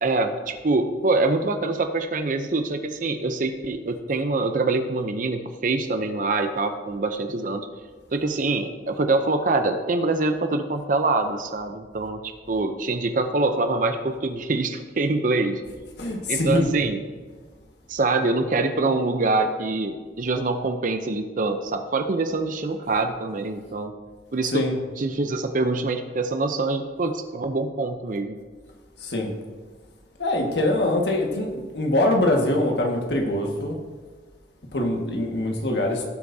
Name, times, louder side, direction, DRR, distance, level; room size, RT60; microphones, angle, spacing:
voice 1, 0.0-7.7 8.1-15.6 16.3-17.0 17.9-23.9 24.3-24.6 25.0-28.4, right 3 dB, 50° right, 7 dB, 0.6 m, -25 dB
voice 2, 16.0-16.7 24.5-24.7 29.0-29.3 30.2-33.7 34.7-36.1, left 1 dB, 75° left, 1 dB, 1.7 m, -23 dB
17.0 x 8.0 x 2.7 m, 1.4 s
head